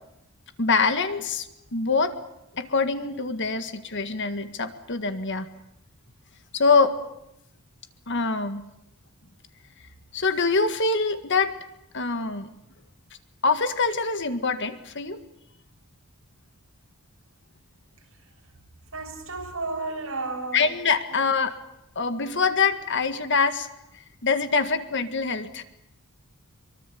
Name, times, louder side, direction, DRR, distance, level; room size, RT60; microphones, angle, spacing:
voice 1, 0.6-2.1 2.5-5.5 6.5-7.0 8.1-8.6 10.1-11.5 11.9-12.5 13.4-15.2 20.5-21.6 21.9-23.7 24.2-25.6, left 4 dB, 55° left, 9 dB, 1.8 m, -24 dB
voice 2, 18.9-20.8 21.1-21.2, right 3 dB, 65° right, 2 dB, 7.0 m, -32 dB
24.0 x 23.5 x 8.6 m, 0.82 s
head